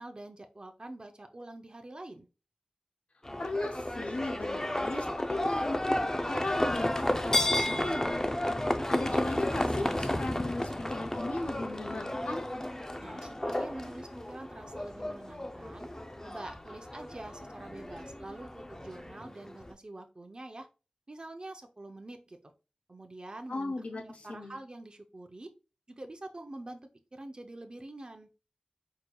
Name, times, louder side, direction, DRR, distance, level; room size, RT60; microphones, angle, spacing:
voice 1, 0.0-2.3 13.0-15.9 16.2-20.7 21.1-22.4 22.9-25.5 25.9-28.3, right 2 dB, 45° right, 5 dB, 0.6 m, -46 dB
Livestock farm animals working animals, 3.2-19.7, left 1 dB, 25° left, 0.5 m, -33 dB
voice 2, 3.4-8.3 8.9-12.5 23.5-24.6, left 2 dB, 75° left, 3 dB, 0.6 m, -37 dB
4.8 x 4.5 x 2.3 m, 0.32 s
wide cardioid pair, 65°, 2 cm